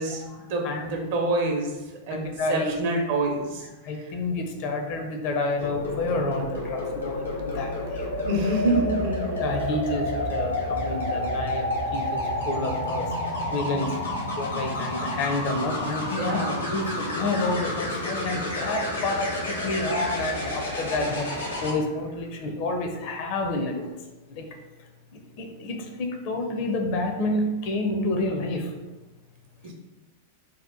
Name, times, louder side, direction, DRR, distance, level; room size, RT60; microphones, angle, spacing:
voice 1, 0.0-0.6 0.9-1.7 2.1-2.2 2.5-3.7 8.2-9.4 16.2-16.7 29.6-29.7, right 1 dB, 55° right, 1 dB, 0.7 m, -26 dB
voice 2, 0.6-1.1 2.1-2.7 3.8-8.0 9.4-11.7 11.9-13.1 13.5-13.9 14.4-21.3 21.6-23.8 24.3-24.4 25.1-28.7, left 2 dB, 45° left, 3 dB, 0.5 m, -29 dB
sound 1, 5.6-21.7 23.6-23.9, left 1 dB, 80° left, 0.9 m, -30 dB
2.8 x 2.2 x 3.5 m, 1.1 s
figure-of-eight pair, 95°, 0 cm